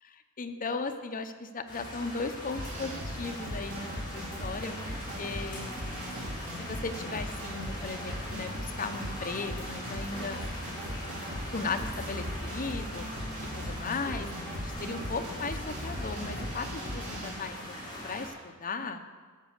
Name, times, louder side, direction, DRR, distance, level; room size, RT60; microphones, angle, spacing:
voice 1, 0.0-4.7 5.2-5.7 6.6-10.5 11.5-13.1 13.6-14.3 14.6-17.7 18.0-19.0, left 4 dB, 40° left, 6 dB, 0.8 m, -36 dB
sound 1, 1.7-18.3, left 1 dB, 20° left, 4.2 m, -41 dB
sound 2, 2.5-17.3, equal, 65° right, 2.4 m, -39 dB
13.5 x 6.1 x 6.5 m, 1.4 s
head